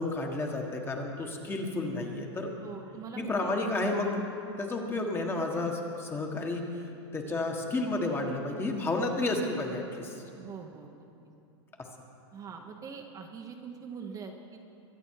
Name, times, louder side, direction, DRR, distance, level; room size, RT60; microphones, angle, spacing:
voice 1, 0.0-2.5 3.2-4.2 4.6-6.6 7.1-10.2 11.8-11.9, left 2 dB, 15° left, 2 dB, 1.6 m, -31 dB
voice 2, 2.6-3.6 4.7-4.9 10.4-11.1 12.3-14.6, right 6 dB, 25° right, 2 dB, 1.1 m, -43 dB
23.0 x 8.5 x 4.8 m, 2.7 s
hypercardioid pair, 125°, 15 cm